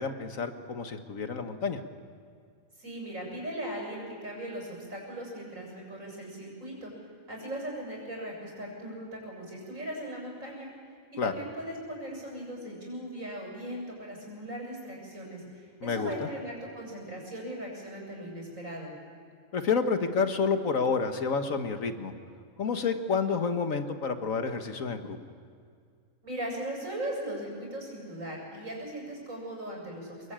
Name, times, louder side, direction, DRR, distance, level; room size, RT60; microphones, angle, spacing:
voice 1, 0.0-1.8 11.2-11.3 15.8-16.3 19.5-22.1 22.6-25.2, left 5 dB, 75° left, 7 dB, 1.8 m, -29 dB
voice 2, 2.8-6.9 7.3-10.7 11.2-18.9 26.2-30.3, right 1 dB, 75° right, -1 dB, 7.7 m, -38 dB
24.5 x 21.5 x 8.8 m, 2.2 s
omnidirectional pair, 1.4 m